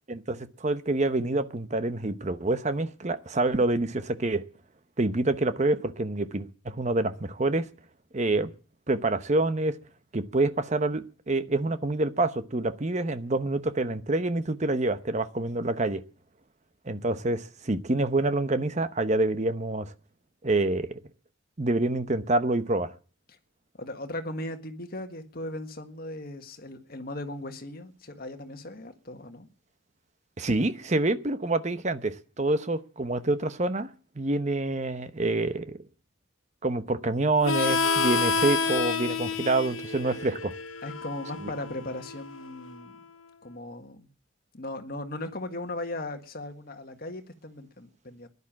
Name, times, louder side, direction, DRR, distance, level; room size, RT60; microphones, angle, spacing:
voice 1, 0.1-4.4 5.0-7.7 8.1-8.5 8.9-9.8 10.1-16.0 16.9-19.9 20.4-21.0 21.6-22.9 30.4-33.9 34.2-35.8 36.6-40.5, right 2 dB, 35° right, 0.9 m, -27 dB
voice 2, 23.8-29.5 40.8-42.9 43.4-44.1 44.5-48.3, left 1 dB, 50° left, 1.7 m, -38 dB
Harmonica, 37.4-42.7, left 5 dB, 80° left, 1.0 m, -29 dB
15.5 x 11.0 x 7.4 m
head